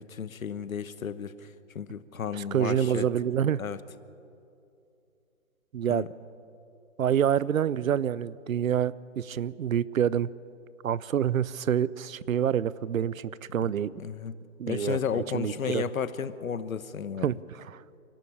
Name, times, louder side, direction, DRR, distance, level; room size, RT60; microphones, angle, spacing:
voice 1, 0.0-1.5 1.7-3.1 3.6-3.8 5.9-6.1 14.0-14.3 14.7-17.3, left 7 dB, 75° left, 13 dB, 1.2 m, -33 dB
voice 2, 2.3-3.6 5.7-6.0 7.0-10.3 10.8-13.9 14.6-15.8 17.2-18.0, right 9 dB, 75° right, 20 dB, 0.7 m, -27 dB
27.0 x 12.0 x 8.6 m, 2.6 s
hypercardioid pair, 170°, 41 cm